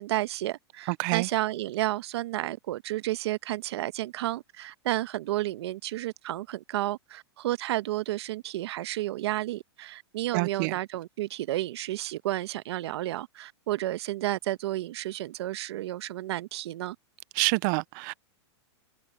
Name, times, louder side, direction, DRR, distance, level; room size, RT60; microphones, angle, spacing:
voice 1, 0.0-17.0, right 15 dB, 65° right, 1.1 m, -31 dB
voice 2, 10.3-10.7 17.4-18.1, right 28 dB, 45° right, 0.5 m, -27 dB
hypercardioid pair, 130°, 15 cm